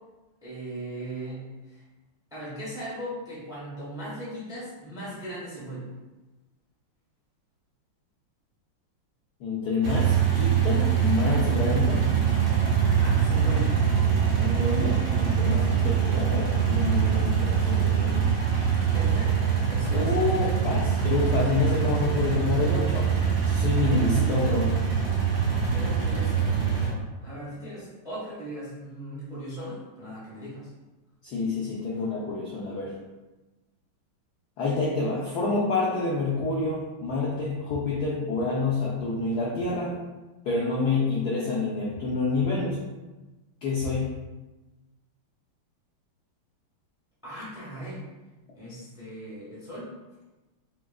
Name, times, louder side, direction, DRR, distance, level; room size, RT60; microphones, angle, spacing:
voice 1, 0.4-1.8 2.3-5.9 12.8-13.8 18.9-20.1 24.1-24.5 25.7-30.7 47.2-48.0 48.5-49.9, right 1 dB, ahead, -8 dB, 0.9 m, -38 dB
voice 2, 9.4-12.0 13.9-18.3 19.9-23.1 23.4-24.7 31.2-32.9 34.6-40.0 40.4-42.8 43.6-44.1, left 3 dB, 70° left, -5 dB, 0.9 m, -28 dB
sound 1, 9.8-26.9, right 7 dB, 85° right, 2.0 m, -24 dB
5.7 x 2.3 x 2.3 m, 1.1 s
omnidirectional pair, 2.4 m